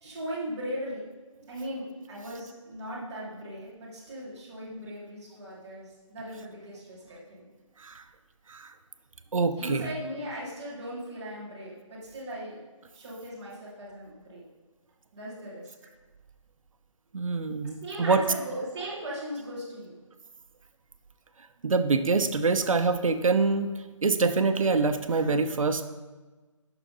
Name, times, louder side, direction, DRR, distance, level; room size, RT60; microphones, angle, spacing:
voice 1, 0.0-1.0 1.5-7.5 9.6-12.6 12.9-14.4 15.1-15.7 17.8-20.0, equal, 5° right, -11 dB, 0.6 m, -38 dB
voice 2, 9.3-9.8 17.1-18.2 21.6-23.7 24.0-25.8, right 4 dB, 80° right, 9 dB, 0.7 m, -25 dB
8.3 x 5.9 x 3.9 m, 1.2 s
hypercardioid pair, 175°, 17 cm